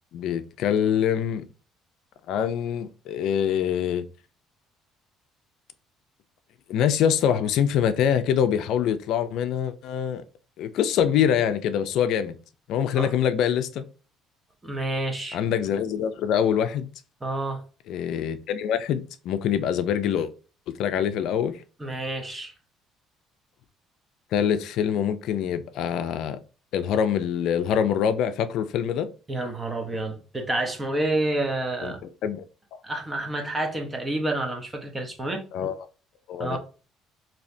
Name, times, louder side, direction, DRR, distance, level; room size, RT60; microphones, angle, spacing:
voice 1, 0.1-1.5 2.3-4.0 6.7-10.2 10.6-12.4 12.7-13.8 15.3-16.9 17.9-20.3 20.7-21.6 24.3-26.4 26.7-29.1 31.8-31.9 32.2-32.4 32.7-32.8 35.5-35.7 36.3-36.6, left 9 dB, 70° left, 0.3 m, -24 dB
voice 2, 14.6-15.4 17.2-17.6 21.8-22.5 29.3-32.0 32.8-35.5 36.4-36.6, right 2 dB, 20° right, 0.8 m, -29 dB
3.2 x 2.8 x 2.6 m
cardioid pair, 105°, 0 cm